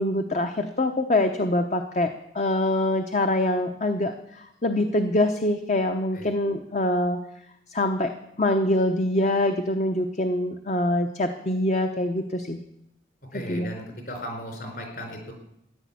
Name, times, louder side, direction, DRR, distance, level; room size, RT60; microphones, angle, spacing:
voice 1, 0.0-7.2 7.7-12.6 13.3-13.7, left 1 dB, 40° left, 6 dB, 0.9 m, -24 dB
voice 2, 13.3-15.3, equal, 55° left, 3 dB, 4.4 m, -36 dB
14.5 x 10.5 x 8.5 m, 0.80 s
head